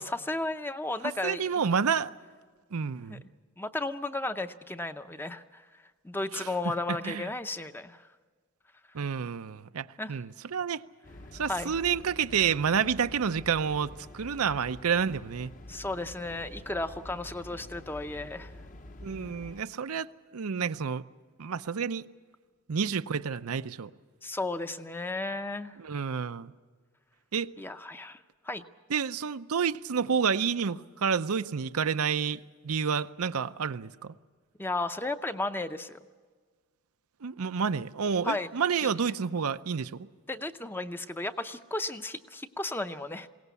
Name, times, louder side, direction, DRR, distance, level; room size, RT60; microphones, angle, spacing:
voice 1, 0.0-1.6 3.1-3.2 3.6-5.6 6.0-8.0 10.0-10.2 11.5-11.7 15.7-18.5 24.2-25.8 27.6-28.2 28.4-28.6 34.6-36.0 38.2-38.5 38.8-38.9 40.3-43.3, left 2 dB, 10° left, 0.6 m, -34 dB
voice 2, 1.2-2.1 2.7-3.2 6.3-7.2 8.9-10.8 11.3-15.5 19.0-20.1 20.3-21.0 21.4-22.0 22.7-23.9 25.8-26.5 27.3-27.5 28.9-34.1 37.2-40.1, right 6 dB, 85° right, 0.6 m, -29 dB
sound 1, 11.0-19.6, left 1 dB, 35° left, 0.9 m, -47 dB
21.5 x 17.5 x 8.2 m
head